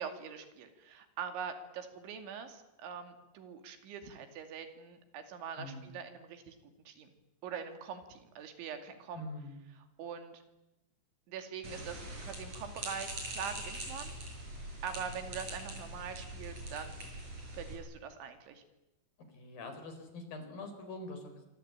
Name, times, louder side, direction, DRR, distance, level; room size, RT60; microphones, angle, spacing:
voice 1, 0.0-6.6 6.9-7.1 7.4-9.2 10.0-10.4 11.3-14.1 14.8-16.9 17.5-18.6, right 7 dB, 85° right, 7 dB, 4.9 m, -43 dB
voice 2, 5.6-5.9 9.1-9.6 19.3-21.5, left 2 dB, 55° left, 7 dB, 5.8 m, -44 dB
sound 1, 11.6-17.7, right 1 dB, 35° right, 8.5 m, -43 dB
26.0 x 25.5 x 8.9 m, 0.96 s
omnidirectional pair, 5.2 m